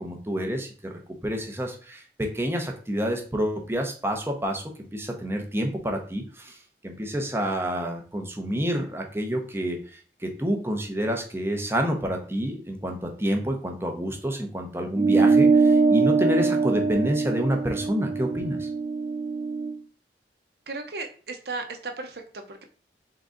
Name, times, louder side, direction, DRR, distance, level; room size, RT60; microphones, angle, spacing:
voice 1, 0.0-6.6 6.8-18.7, equal, 15° right, 3 dB, 0.7 m, -28 dB
sound 1, 14.9-19.7, right 4 dB, 50° right, 0.4 m, -22 dB
voice 2, 20.7-22.7, right 3 dB, 65° right, 5 dB, 0.8 m, -35 dB
3.8 x 3.6 x 3.7 m, 0.39 s
head